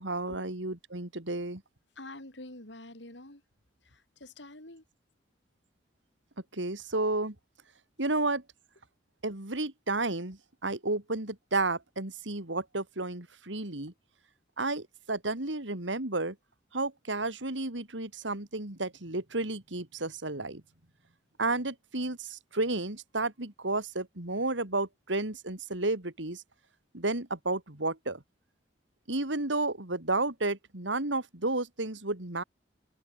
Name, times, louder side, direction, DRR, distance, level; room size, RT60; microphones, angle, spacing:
voice 1, 0.0-1.6 6.5-7.3 8.0-8.4 9.2-13.9 14.6-16.3 16.7-20.6 21.4-26.4 26.9-28.2 29.1-32.4, right 2 dB, 85° right, 3.3 m, -32 dB
voice 2, 2.0-3.4 3.8-4.8, left 1 dB, 75° left, 6.0 m, -47 dB
open air
head